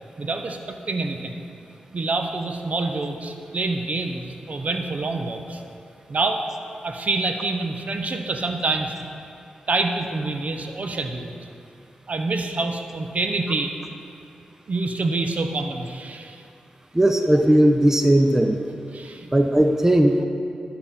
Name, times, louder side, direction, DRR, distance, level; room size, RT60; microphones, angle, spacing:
voice 1, 0.2-1.4 1.9-5.6 6.1-6.4 6.8-8.9 9.7-11.4 12.1-13.7 14.7-16.4 18.9-19.3, right 3 dB, 55° right, 5 dB, 0.8 m, -26 dB
voice 2, 16.9-18.6 19.3-20.3, right 1 dB, 15° right, 5 dB, 0.6 m, -17 dB
12.0 x 5.8 x 4.2 m, 2.7 s
cardioid pair, 50°, 3 cm